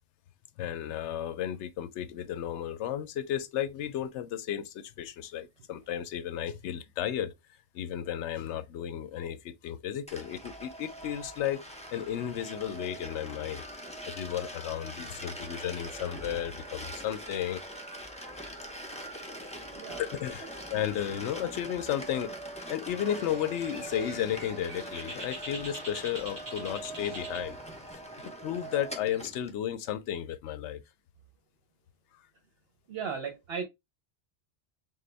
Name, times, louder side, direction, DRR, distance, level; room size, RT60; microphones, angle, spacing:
voice 1, 0.6-7.3 7.7-13.6 14.0-17.6 20.0-22.3 22.7-27.6 28.4-30.8, left 10 dB, 85° left, 0.9 m, -33 dB
sound 1, 10.1-29.6, right 1 dB, 5° left, 0.6 m, -42 dB
voice 2, 19.7-20.1 32.9-33.6, right 6 dB, 65° right, 1.0 m, -36 dB
Bird, 22.9-27.9, right 2 dB, 15° right, 1.4 m, -44 dB
6.4 x 2.2 x 3.3 m
omnidirectional pair, 1.2 m